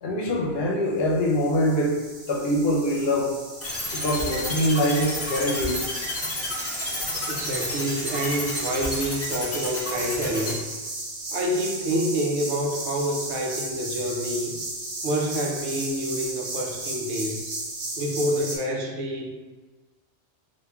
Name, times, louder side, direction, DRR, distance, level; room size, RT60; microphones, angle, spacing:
voice 1, 0.0-2.0 2.3-3.3 3.9-5.8, equal, 65° left, -1 dB, 0.8 m, -24 dB
sound 1, 1.1-18.6, right 2 dB, 50° right, 0.8 m, -35 dB
sound 2, 3.6-10.5, left 2 dB, 20° left, 0.4 m, -30 dB
voice 2, 7.3-10.7 11.3-14.6 15.0-17.5 18.0-19.3, equal, 80° right, 0 dB, 0.9 m, -27 dB
3.4 x 2.5 x 2.9 m, 1.3 s
omnidirectional pair, 1.1 m